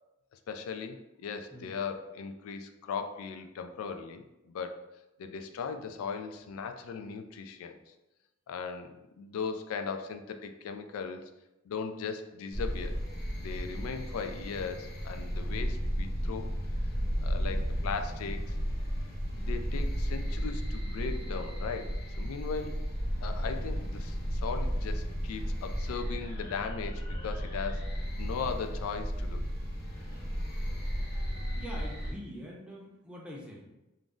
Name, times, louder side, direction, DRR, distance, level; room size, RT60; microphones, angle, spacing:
voice 1, 0.3-4.9 5.2-7.9 8.5-11.3 11.7-13.0 13.4-16.5 17.2-18.6 19.3-22.8 23.2-27.9 28.2-29.5, left 5 dB, 90° left, 7 dB, 0.3 m, -38 dB
sound 1, 12.5-32.1, equal, 45° left, 0.9 m, -34 dB
voice 2, 31.6-33.8, equal, 5° right, -3 dB, 0.5 m, -44 dB
2.5 x 2.0 x 3.5 m, 0.96 s
head